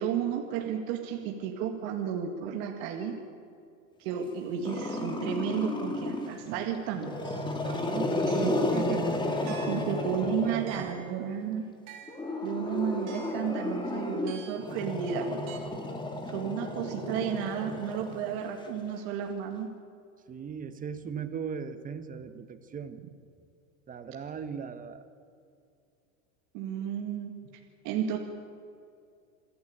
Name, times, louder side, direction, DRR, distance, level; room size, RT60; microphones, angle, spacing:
voice 1, 0.0-3.2 4.0-7.2 8.4-8.7 9.7-11.7 12.4-15.4 16.3-19.7 26.5-27.3 27.8-28.2, right 8 dB, 55° right, 2 dB, 2.1 m, -32 dB
Growling, 4.6-6.4 6.9-11.1 12.1-18.6, left 2 dB, 10° left, 1.9 m, -33 dB
sound 1, 7.2-7.5 8.3-8.7 9.5-10.0 10.7-11.1 11.9-12.3 13.1-13.5 14.3-14.7 15.5-15.6, right 7 dB, 80° right, 4.8 m, -48 dB
voice 2, 7.6-9.6 10.2-10.9 16.4-16.6 20.3-23.0 23.9-25.1, right 6 dB, 20° right, 10 dB, 1.2 m, -38 dB
27.0 x 11.0 x 8.9 m, 2.5 s
supercardioid pair, 145°, 41 cm